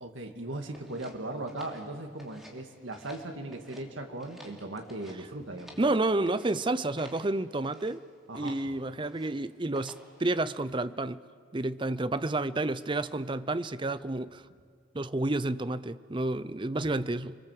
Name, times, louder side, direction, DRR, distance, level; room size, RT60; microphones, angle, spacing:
voice 1, 0.0-5.8 8.3-8.6, right 2 dB, 75° right, 4 dB, 2.3 m, -38 dB
sound 1, 0.7-2.6 2.9-3.8 4.2-5.9 6.2-6.6 7.0-7.3 7.6-8.0 8.3-8.7 9.0-9.4 9.7-10.2, equal, ahead, 3.0 m, -53 dB
voice 2, 5.8-8.0 8.3-11.2 11.5-14.4 14.9-17.4, right 2 dB, 25° right, 14 dB, 0.6 m, -30 dB
30.0 x 23.5 x 7.8 m, 2.2 s
head